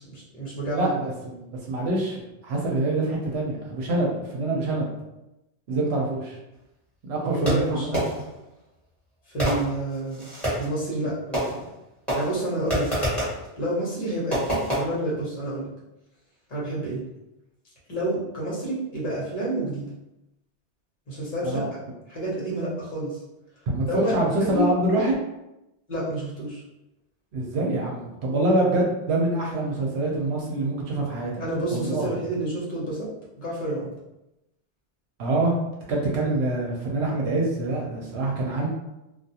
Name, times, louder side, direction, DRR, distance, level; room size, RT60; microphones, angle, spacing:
voice 1, 0.0-0.9 7.2-7.9 9.3-10.2 10.6-11.6 12.1-12.9 13.6-15.7 16.5-17.0 17.9-19.9 21.1-21.6 22.1-23.2 23.9-24.6 25.9-26.6 31.4-33.1 33.4-33.9, right 1 dB, 45° left, -6 dB, 1.0 m, -29 dB
voice 2, 0.6-4.9 5.7-6.4 7.0-7.9 21.4-21.7 23.7-25.2 27.3-31.3 31.7-32.1 35.2-35.6 35.9-38.7, right 2 dB, 70° right, -2 dB, 0.8 m, -25 dB
Fireworks, 7.4-8.4 9.4-10.8 11.3-11.8 12.1-13.5 14.3-14.8, equal, ahead, 1.2 m, -27 dB
2.3 x 2.3 x 2.7 m, 0.93 s
omnidirectional pair, 1.2 m